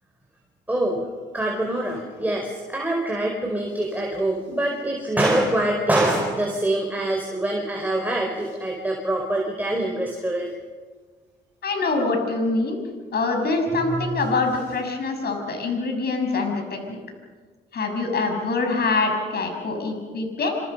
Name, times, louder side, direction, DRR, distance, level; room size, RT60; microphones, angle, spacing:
voice 1, 0.7-1.0 1.3-10.5 13.8-14.0, right 1 dB, 10° right, 0 dB, 4.8 m, -24 dB
voice 2, 11.6-12.8 13.1-17.0 17.7-20.6, left 3 dB, 55° left, 3 dB, 6.7 m, -24 dB
27.0 x 26.0 x 5.6 m, 1.5 s
cardioid pair, 90°, 20 cm